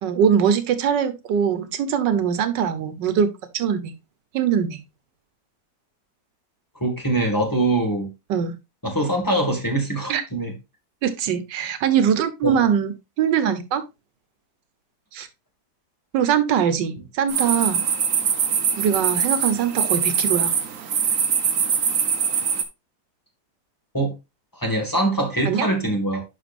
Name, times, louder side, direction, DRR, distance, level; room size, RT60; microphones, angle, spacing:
voice 1, 0.0-3.3 3.5-3.9 4.3-4.8 8.3-8.5 10.1-10.2 11.0-12.9 13.2-13.8 15.1-15.3 16.1-17.8 18.8-20.5 25.5-25.7, right 8 dB, 90° right, 1.6 m, -22 dB
voice 2, 6.8-8.1 8.8-10.5 12.4-12.7 23.9-24.1 24.5-26.2, right 1 dB, 10° left, 1.7 m, -23 dB
sound 1, 17.3-22.6, right 7 dB, 55° right, 1.2 m, -23 dB
11.0 x 5.0 x 2.5 m
omnidirectional pair, 1.9 m